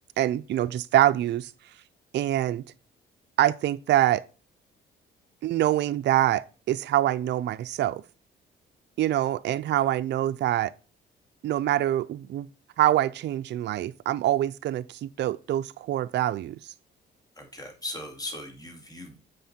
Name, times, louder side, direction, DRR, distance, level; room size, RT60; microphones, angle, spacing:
voice 1, 0.2-1.5 2.1-2.6 3.4-4.2 5.4-8.0 9.0-10.7 11.4-12.5 12.8-16.7, right 13 dB, 60° right, 0.4 m, -25 dB
voice 2, 17.4-19.2, left 1 dB, 20° left, 2.2 m, -38 dB
7.8 x 5.3 x 4.3 m
cardioid pair, 90°, 20 cm